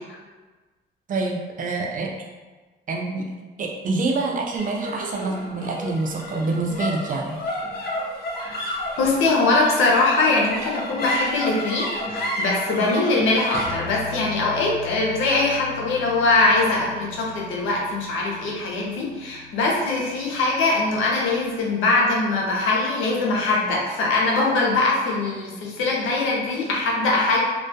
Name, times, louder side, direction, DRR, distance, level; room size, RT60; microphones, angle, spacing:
voice 1, 1.1-2.1 2.9-3.3 3.6-7.4, right 3 dB, 40° right, 0 dB, 0.4 m, -26 dB
sound 1, 4.6-21.1, left 1 dB, 50° left, 0.7 m, -33 dB
voice 2, 9.0-27.4, left 3 dB, 90° left, -2 dB, 0.6 m, -22 dB
2.2 x 2.1 x 2.6 m, 1.3 s
cardioid pair, 90°, 20 cm